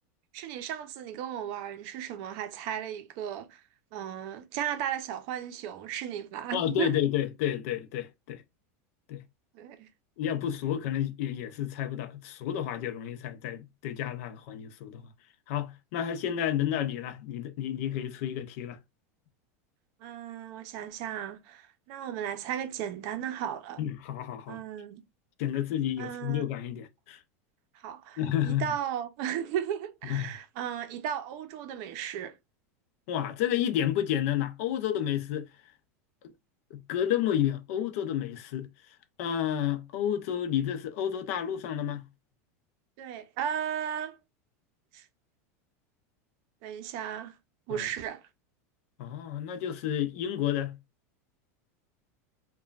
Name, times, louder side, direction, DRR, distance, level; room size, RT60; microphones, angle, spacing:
voice 1, 0.3-3.6 3.9-6.9 9.5-9.9 20.0-23.8 24.5-25.0 26.0-26.4 27.7-32.3 43.0-44.2 44.9-45.1 46.6-47.4 47.7-48.2, right 9 dB, 55° right, 0.6 m, -35 dB
voice 2, 6.5-8.4 9.1-9.2 10.2-15.0 15.5-18.8 23.8-24.6 25.4-27.2 28.2-28.7 30.0-30.3 33.1-35.5 36.7-38.7 39.2-42.1 47.7-47.9 49.0-50.8, left 10 dB, 65° left, 0.5 m, -30 dB
3.0 x 2.2 x 2.3 m
supercardioid pair, 135°, 8 cm